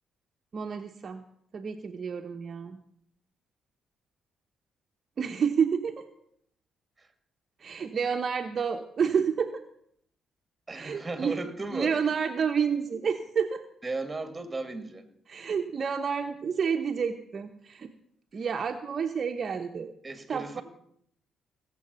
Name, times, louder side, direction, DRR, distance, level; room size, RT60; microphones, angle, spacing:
voice 1, 0.5-1.2 1.5-2.8 5.2-6.1 7.6-9.6 10.7-11.4 11.7-13.6 15.3-17.9 18.3-19.9 20.3-20.6, right 6 dB, 45° right, 4 dB, 1.0 m, -29 dB
voice 2, 10.7-12.0 13.8-15.1 20.0-20.6, right 2 dB, 20° right, 9 dB, 2.2 m, -35 dB
18.5 x 7.8 x 7.0 m, 0.68 s
cardioid pair, 90°, 0 cm